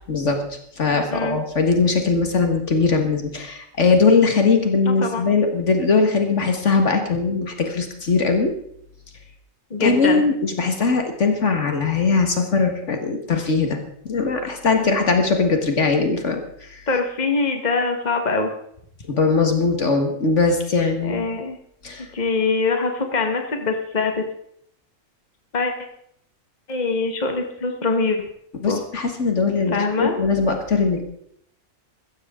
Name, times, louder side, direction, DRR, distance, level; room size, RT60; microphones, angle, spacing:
voice 1, 0.1-0.4 0.8-8.5 9.8-13.8 14.1-16.8 19.1-21.3 21.8-22.1 28.6-31.0, left 4 dB, 60° left, 5 dB, 2.0 m, -20 dB
voice 2, 4.8-5.3 9.7-10.2 16.9-18.5 21.0-21.6 22.1-24.2 25.5-25.7 26.7-28.2 28.6-28.8 29.7-30.2, left 4 dB, 35° left, 4 dB, 1.7 m, -23 dB
15.5 x 14.0 x 3.7 m, 0.69 s
omnidirectional pair, 1.4 m